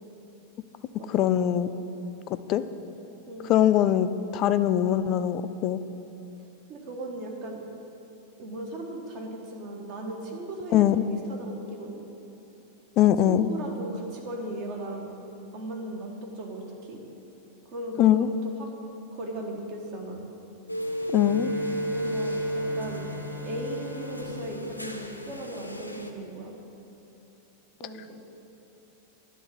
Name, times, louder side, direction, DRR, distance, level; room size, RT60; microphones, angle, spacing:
voice 1, 1.1-1.7 2.5-2.6 3.4-5.8 10.7-11.1 13.0-13.5 18.0-18.3 21.1-21.5, left 11 dB, 35° left, 12 dB, 0.3 m, -22 dB
voice 2, 6.7-7.6 8.4-12.0 13.2-15.1 15.5-17.0 17.6-18.7 19.1-20.2 21.9-23.1 23.4-26.5 27.8-28.2, right 1 dB, 45° right, 1 dB, 1.3 m, -37 dB
sound 1, 20.7-26.1, right 1 dB, 90° left, 0.5 m, -33 dB
Bowed string instrument, 21.1-25.9, left 2 dB, 5° right, 0.6 m, -42 dB
10.0 x 3.9 x 7.4 m, 3.0 s
figure-of-eight pair, 90°, 0 cm